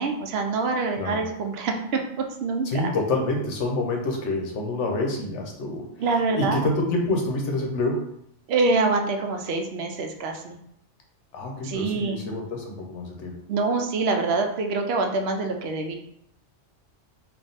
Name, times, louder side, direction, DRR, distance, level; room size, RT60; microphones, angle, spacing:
voice 1, 0.0-2.9 6.0-6.7 8.5-10.6 11.6-12.2 13.5-15.9, right 3 dB, 65° right, 4 dB, 0.8 m, -25 dB
voice 2, 2.6-5.9 6.3-8.0 11.3-13.4, left 2 dB, 75° left, 1 dB, 1.0 m, -27 dB
3.5 x 2.5 x 3.9 m, 0.73 s
omnidirectional pair, 1.2 m